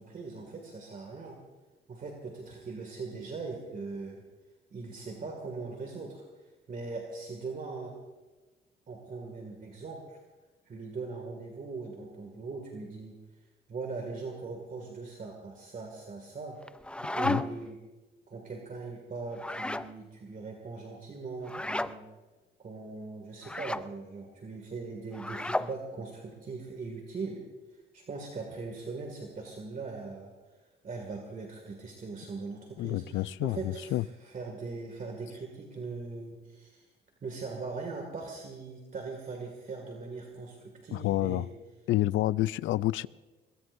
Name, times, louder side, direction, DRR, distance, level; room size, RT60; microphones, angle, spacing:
voice 1, 0.0-1.4 1.9-4.2 4.7-7.9 8.9-10.2 10.6-13.2 13.7-16.6 17.1-17.8 18.3-22.1 22.6-27.4 27.7-30.6 30.8-36.9 37.2-41.5, right 4 dB, 45° right, 2.2 m, -40 dB
sound 1, 16.6-17.7 19.3-19.9 21.4-21.9 23.4-23.9 25.1-25.7, left 1 dB, 5° left, 0.4 m, -33 dB
voice 2, 32.8-34.0 40.9-41.5 41.9-43.1, left 15 dB, 75° left, 0.4 m, -28 dB
22.0 x 21.0 x 2.6 m
cardioid pair, 90°, 20 cm